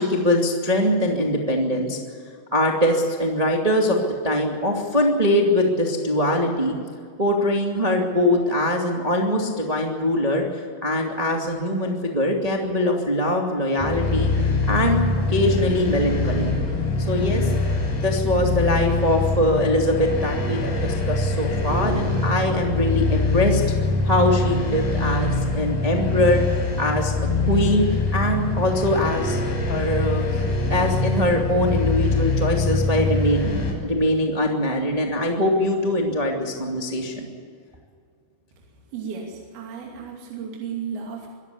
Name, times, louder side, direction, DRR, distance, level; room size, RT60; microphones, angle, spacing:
voice 1, 0.0-2.0 2.5-4.0 4.2-6.8 7.2-14.3 14.7-15.0 15.3-16.5 17.1-17.5 18.0-23.6 24.0-26.4 26.8-27.1 27.4-27.8 28.1-29.4 29.7-30.4 30.7-33.6 33.8-37.3, left 1 dB, 30° right, 0 dB, 0.7 m, -22 dB
sound 1, 13.8-33.7, left 3 dB, 60° left, 8.3 m, -23 dB
voice 2, 38.9-41.3, right 6 dB, 55° right, -1 dB, 4.3 m, -34 dB
24.5 x 14.0 x 8.4 m, 2.1 s
omnidirectional pair, 5.4 m